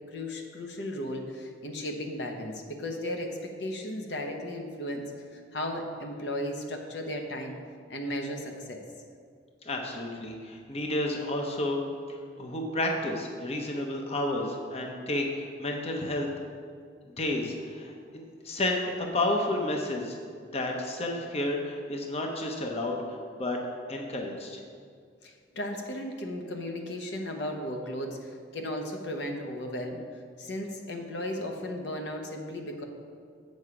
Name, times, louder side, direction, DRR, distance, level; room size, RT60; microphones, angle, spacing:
voice 1, 0.1-7.6 7.9-8.8 25.2-30.0 30.4-32.8, left 1 dB, 65° left, 3 dB, 0.9 m, -35 dB
voice 2, 9.6-11.8 12.1-16.3 17.2-20.2 20.5-23.6 23.9-24.6, left 1 dB, 35° left, 1 dB, 0.8 m, -31 dB
8.4 x 6.3 x 5.0 m, 2.1 s
head